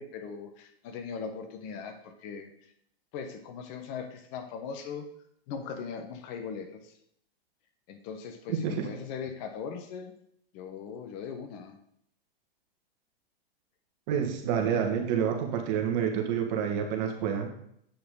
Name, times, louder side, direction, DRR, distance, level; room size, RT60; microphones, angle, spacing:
voice 1, 0.0-2.5 3.1-5.0 5.5-6.9 7.9-10.1 10.5-11.8, left 6 dB, 40° left, 6 dB, 1.2 m, -39 dB
voice 2, 8.5-8.9 14.1-17.5, right 8 dB, 45° right, 3 dB, 1.8 m, -28 dB
8.5 x 5.9 x 3.9 m, 0.71 s
hypercardioid pair, 115°, 30 cm